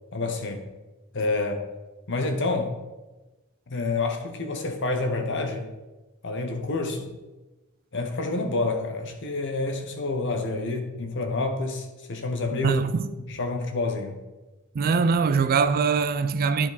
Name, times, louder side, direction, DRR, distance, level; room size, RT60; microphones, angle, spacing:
voice 1, 0.1-0.7 1.1-1.6 2.1-2.7 3.7-5.7 6.2-7.1 7.9-12.8 13.3-14.2, left 3 dB, 60° left, 1.0 m, -28 dB
voice 2, 12.6-13.1 14.7-16.7, right 5 dB, 45° right, 0.3 m, -22 dB
10.5 x 4.4 x 4.1 m
head